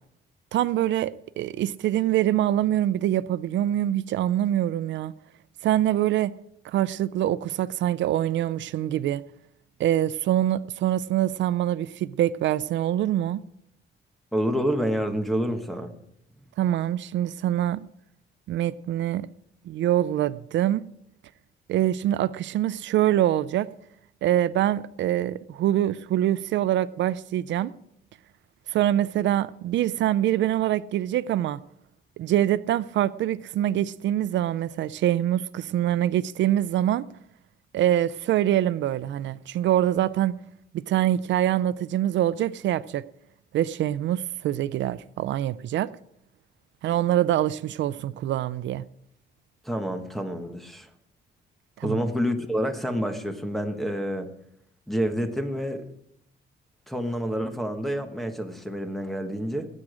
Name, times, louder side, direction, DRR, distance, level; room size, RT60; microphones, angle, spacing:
voice 1, 0.5-5.1 5.6-6.3 6.6-9.2 9.8-13.4 16.6-17.9 18.5-19.3 19.7-20.8 21.7-23.7 24.2-27.7 28.7-31.6 32.2-37.0 37.7-40.3 40.7-43.0 43.5-45.9 46.8-48.9 51.8-52.0, right 12 dB, 75° right, 0.5 m, -24 dB
voice 2, 14.3-15.9 49.6-50.9 51.8-54.3 54.9-55.8 56.9-59.7, equal, ahead, 1.3 m, -28 dB
19.0 x 8.7 x 5.0 m
cardioid pair, 155°, 19 cm